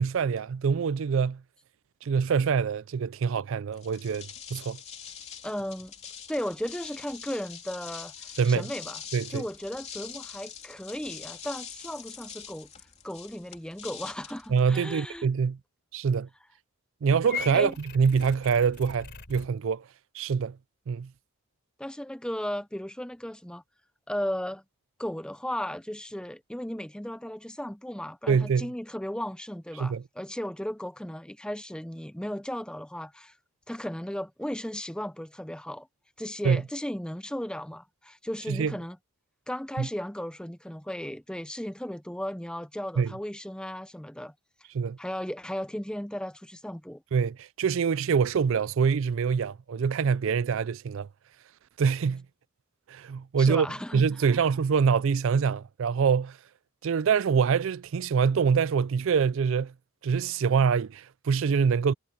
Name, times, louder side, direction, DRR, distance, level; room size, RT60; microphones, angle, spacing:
voice 1, 0.0-1.4 2.0-4.8 8.4-8.6 9.1-9.4 14.5-15.6 15.9-16.3 17.0-19.8 20.1-20.6 20.9-21.1 28.3-28.7 29.8-30.0 36.4-36.6 38.5-38.7 39.8-39.9 43.0-43.1 44.7-45.0 47.1-51.1 51.8-52.2 52.9-53.7 53.9-56.4 56.8-59.7 60.0-61.9, right 6 dB, 60° right, 0.4 m, -25 dB
sound 1, 3.7-15.2, left 7 dB, 30° left, 3.1 m, -44 dB
voice 2, 5.4-5.9 6.3-9.0 9.3-12.7 13.0-15.3 17.5-17.7 21.8-23.6 24.1-24.6 25.0-33.3 33.7-35.9 36.2-39.0 39.5-44.3 45.0-47.0 53.4-54.1 54.3-54.4, equal, 5° left, 0.6 m, -35 dB
Purr / Meow, 17.2-19.5, left 6 dB, 50° left, 4.4 m, -39 dB
head